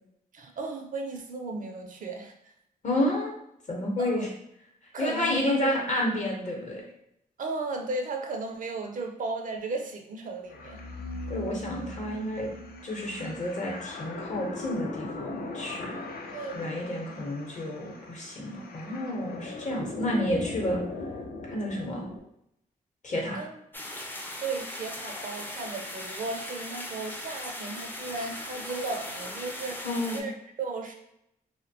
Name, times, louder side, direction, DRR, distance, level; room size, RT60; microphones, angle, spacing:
voice 1, 0.3-2.5 4.0-4.2 4.9-5.9 7.4-10.8 16.3-17.4 23.3-23.6 24.4-30.9, right 3 dB, 55° right, 4 dB, 0.4 m, -35 dB
voice 2, 2.8-3.3 3.7-4.3 5.0-6.8 11.3-12.5 12.8-15.9 16.5-20.8 21.5-22.1 23.0-23.4 29.8-30.3, left 1 dB, 50° left, -1 dB, 0.8 m, -30 dB
sound 1, 10.5-22.2, left 2 dB, 75° left, 0.4 m, -39 dB
sound 2, 23.7-30.2, left 1 dB, 10° left, 0.4 m, -39 dB
2.6 x 2.1 x 2.6 m, 0.77 s
cardioid pair, 80°, 16 cm